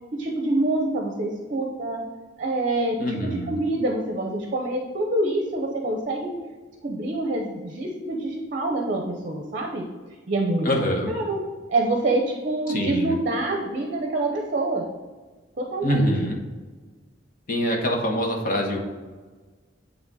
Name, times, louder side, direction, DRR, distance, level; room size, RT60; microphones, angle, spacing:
voice 1, 0.1-2.0 2.4-6.4 6.8-9.8 10.3-10.7 11.1-11.4 11.7-14.8 15.6-16.1, right 2 dB, 45° right, 2 dB, 0.7 m, -26 dB
voice 2, 3.0-3.6 10.6-11.1 12.7-13.1 15.8-16.3 17.5-18.8, equal, 45° left, 0 dB, 1.3 m, -24 dB
8.6 x 3.4 x 4.1 m, 1.4 s
head